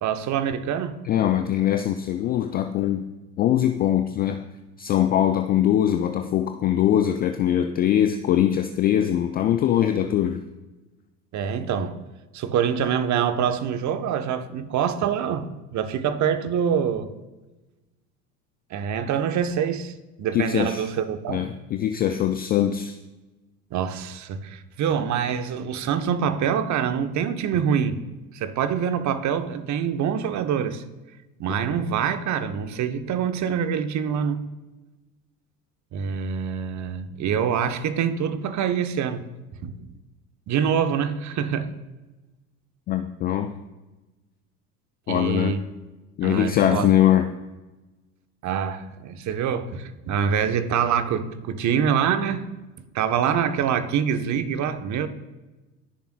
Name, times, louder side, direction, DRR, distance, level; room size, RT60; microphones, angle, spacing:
voice 1, 0.0-1.0 11.3-12.0 12.3-17.1 18.7-19.9 20.2-21.5 23.7-28.0 28.3-30.8 31.4-34.4 35.9-39.2 39.6-39.7 40.5-41.7 45.1-45.6 46.2-46.9 48.4-52.5 52.9-55.1, right 7 dB, 35° right, 1.0 m, -25 dB
voice 2, 1.0-3.0 3.4-4.5 4.8-10.4 20.3-20.9 21.3-23.0 42.9-43.5 45.1-45.5 46.2-47.3, left 11 dB, 25° left, 0.3 m, -22 dB
20.5 x 6.9 x 2.3 m
figure-of-eight pair, 70°, 47 cm